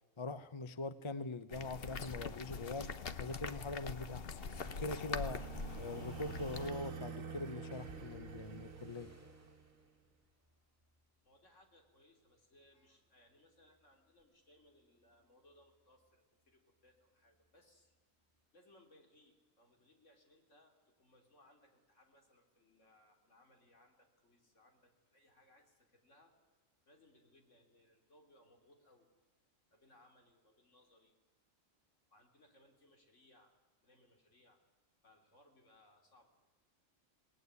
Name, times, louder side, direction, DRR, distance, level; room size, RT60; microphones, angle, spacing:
voice 1, 0.2-2.9 3.2-4.4 4.8-5.5 5.8-9.1, left 3 dB, 30° left, 13 dB, 0.7 m, -43 dB
sound 1, 1.5-6.7, left 5 dB, 50° left, 1.1 m, -43 dB
sound 2, 4.1-9.8, right 5 dB, 90° right, 1.6 m, -48 dB
sound 3, 7.7-11.9 12.3-12.9 13.3-16.5 16.8-17.9 18.2-18.4, right 1 dB, 10° right, 3.9 m, -66 dB
voice 2, 11.2-18.0 18.5-26.3 26.9-29.1 29.7-31.1 32.1-33.5 33.8-34.6 35.0-36.4, left 1 dB, 65° left, 3 dB, 3.7 m, -67 dB
26.0 x 19.0 x 9.7 m, 1.3 s
omnidirectional pair, 1.4 m